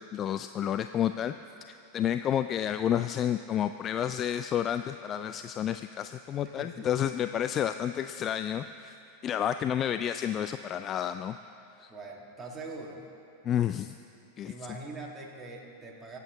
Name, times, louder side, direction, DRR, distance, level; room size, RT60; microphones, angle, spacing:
voice 1, 0.0-1.3 1.7-9.0 9.2-11.4 11.8-11.9 13.4-14.0 14.4-14.5, left 10 dB, 35° left, 10 dB, 0.3 m, -30 dB
voice 2, 6.4-7.1 11.9-13.0 14.4-16.2, right 2 dB, 15° right, -3 dB, 2.4 m, -43 dB
24.5 x 8.3 x 4.0 m, 2.7 s
figure-of-eight pair, 90°, 0 cm